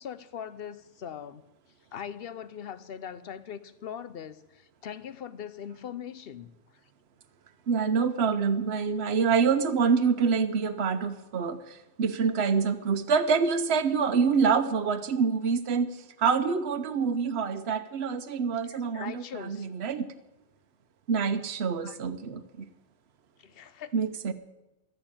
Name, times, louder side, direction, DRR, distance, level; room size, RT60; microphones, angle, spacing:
voice 1, 0.0-1.4 1.9-6.5 18.6-19.7 21.8-22.0 23.4-23.9, left 8 dB, 60° left, 0.9 m, -41 dB
voice 2, 7.7-15.9 16.2-20.1 21.1-22.7 23.9-24.3, right 5 dB, 70° right, 1.1 m, -26 dB
13.5 x 7.7 x 8.7 m
omnidirectional pair, 1.1 m